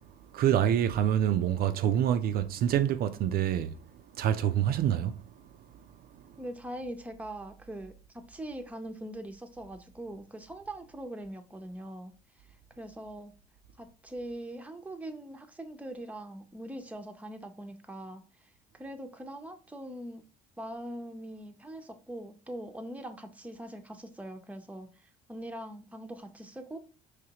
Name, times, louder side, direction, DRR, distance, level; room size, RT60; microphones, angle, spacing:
voice 1, 0.3-3.8 4.2-5.2, right 10 dB, 65° right, 0.4 m, -26 dB
voice 2, 6.4-12.1 12.8-13.3 13.8-20.2 20.6-26.8, right 1 dB, 10° right, 0.7 m, -42 dB
4.9 x 3.2 x 2.9 m
cardioid pair, 110°, 17 cm